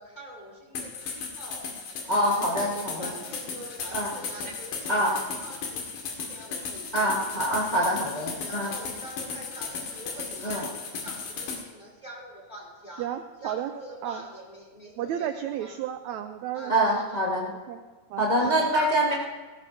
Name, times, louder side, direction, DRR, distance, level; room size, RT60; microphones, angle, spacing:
voice 1, 0.0-1.7 2.2-5.2 5.4-7.3 7.8-13.1 13.4-15.3 15.6-15.7 16.5-17.2 18.4-18.9, right 1 dB, 15° left, -4 dB, 3.4 m, -45 dB
sound 1, 0.7-11.6, left 5 dB, 85° left, 3.6 m, -35 dB
voice 2, 2.1-3.2 3.9-4.1 4.9-5.2 6.9-8.7 10.4-10.7 16.7-17.5 18.2-19.1, right 1 dB, 35° left, -5 dB, 0.6 m, -25 dB
voice 3, 13.0-13.7 14.0-14.2 15.0-17.0 17.7-17.8 18.1-18.3 18.5-18.7, right 10 dB, 85° right, 8 dB, 1.6 m, -33 dB
18.5 x 15.0 x 2.8 m, 1.4 s
omnidirectional pair, 3.8 m